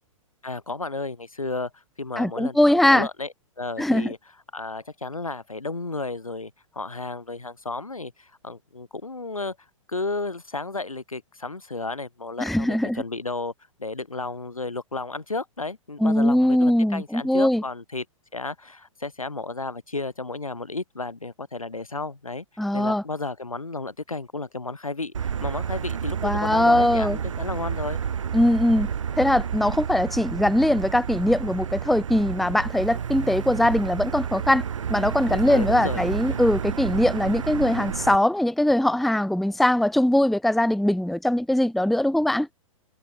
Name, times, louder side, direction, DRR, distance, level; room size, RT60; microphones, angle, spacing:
voice 1, 0.4-3.3 3.6-4.2 4.5-9.6 9.9-13.5 13.8-18.0 18.3-22.4 22.7-28.0 35.3-36.4, left 3 dB, 85° left, 6.1 m, -33 dB
voice 2, 2.2-3.1 3.8-4.1 12.4-13.0 16.0-17.6 22.6-23.0 26.2-27.2 28.3-28.9 29.2-34.6 34.9-42.5, left 1 dB, ahead, 0.9 m, -21 dB
Motor vehicle (road), 25.1-38.2, right 7 dB, 65° right, 2.5 m, -30 dB
figure-of-eight pair, 110°, 17 cm